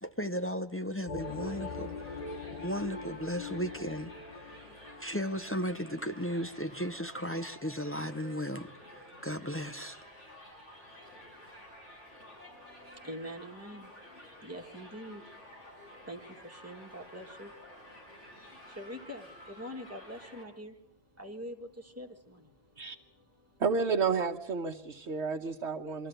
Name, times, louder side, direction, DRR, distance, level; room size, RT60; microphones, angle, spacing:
voice 1, 0.0-2.2 2.5-4.1 5.0-10.0, equal, 15° left, 0.5 m, -35 dB
sound 1, 1.1-6.4, left 4 dB, 40° left, 0.9 m, -42 dB
Crowd, 1.2-20.4, left 1 dB, 90° left, 7.0 m, -52 dB
voice 2, 12.4-23.6, equal, 15° right, 1.6 m, -46 dB
voice 3, 23.6-26.1, right 5 dB, 75° right, 1.3 m, -31 dB
23.0 x 14.0 x 8.9 m
omnidirectional pair, 1.2 m